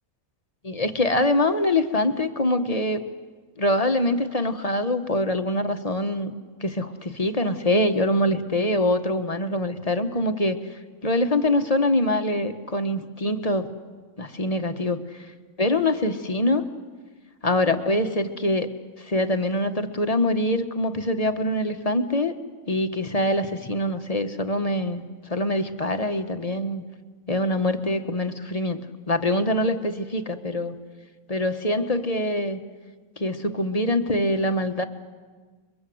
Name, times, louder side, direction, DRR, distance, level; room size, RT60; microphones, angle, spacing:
voice 1, 0.6-3.0 3.6-6.3 6.6-10.6 11.0-13.7 14.2-15.0 15.6-16.6 17.4-18.7 19.0-22.3 22.7-26.8 27.3-28.8 29.1-30.7 31.3-32.6 33.2-34.8, left 1 dB, 25° left, 8 dB, 1.2 m, -24 dB
30.0 x 22.5 x 7.8 m, 1.4 s
omnidirectional pair, 1.6 m